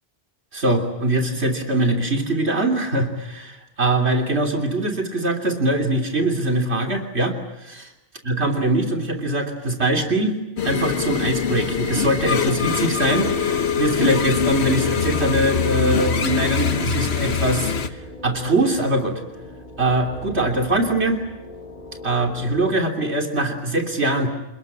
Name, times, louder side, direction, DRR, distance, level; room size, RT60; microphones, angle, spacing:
voice 1, 0.5-7.4 7.6-7.8 8.3-10.4 10.6-19.2 19.8-21.2 22.0-24.3, right 1 dB, 65° right, 3 dB, 3.5 m, -22 dB
sound 1, 10.6-17.9, left 6 dB, 70° left, 1.4 m, -23 dB
sound 2, 14.6-22.6, left 1 dB, 35° left, 5.7 m, -38 dB
28.5 x 21.0 x 8.4 m, 0.93 s
omnidirectional pair, 1.2 m